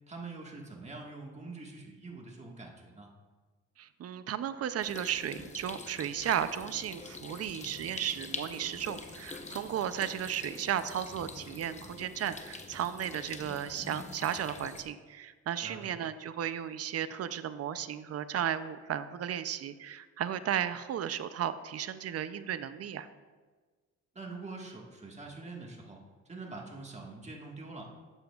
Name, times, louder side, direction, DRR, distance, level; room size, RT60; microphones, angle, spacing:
voice 1, 0.1-3.1 15.6-16.0 24.1-26.0 26.3-28.0, right 3 dB, 20° right, -1 dB, 1.6 m, -44 dB
voice 2, 3.8-23.1, right 9 dB, 55° right, 13 dB, 0.5 m, -34 dB
sound 1, 4.8-14.8, left 3 dB, 25° left, 0.8 m, -45 dB
11.5 x 7.9 x 2.4 m, 1.4 s
cardioid pair, 90°, 30 cm